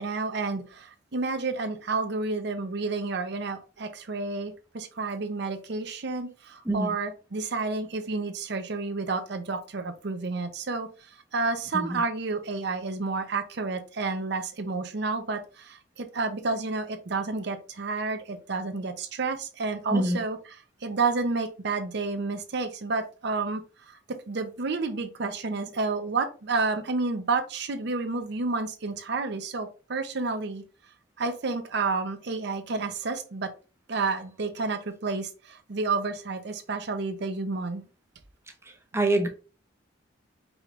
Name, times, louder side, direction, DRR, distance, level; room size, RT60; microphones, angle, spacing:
voice 1, 0.0-10.9 11.3-20.4 20.8-23.6 23.9-24.0 24.3-30.6 31.2-33.5 33.9-37.8, right 3 dB, 60° right, 0.6 m, -30 dB
voice 2, 19.9-20.2 38.7-39.3, right 1 dB, 15° right, 0.6 m, -26 dB
5.0 x 3.1 x 2.4 m
head